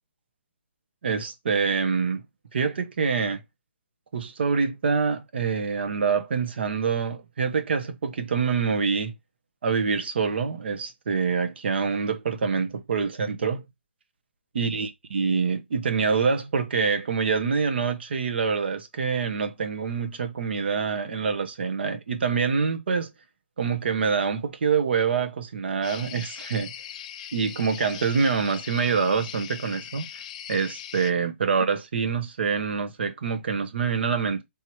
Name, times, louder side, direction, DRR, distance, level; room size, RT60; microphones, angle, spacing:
voice 1, 1.0-2.2 2.5-3.4 4.1-9.1 9.6-13.6 14.5-23.1 23.6-26.7 27.3-30.1 30.5-34.4, right 5 dB, 60° right, 0.9 m, -26 dB
sound 1, 25.8-31.1, left 10 dB, 35° left, 0.4 m, -40 dB
3.6 x 2.9 x 4.6 m
hypercardioid pair, 155°, 6 cm